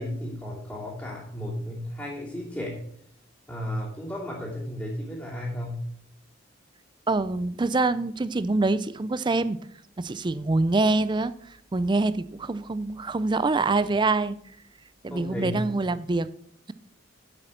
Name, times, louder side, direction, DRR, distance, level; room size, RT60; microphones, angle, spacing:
voice 1, 0.0-2.8 3.5-5.9 15.1-15.7, left 1 dB, 10° left, 2.8 m, -34 dB
voice 2, 7.1-9.6 10.0-14.4 15.0-16.3, right 3 dB, 25° right, 0.4 m, -25 dB
8.7 x 7.9 x 5.6 m
head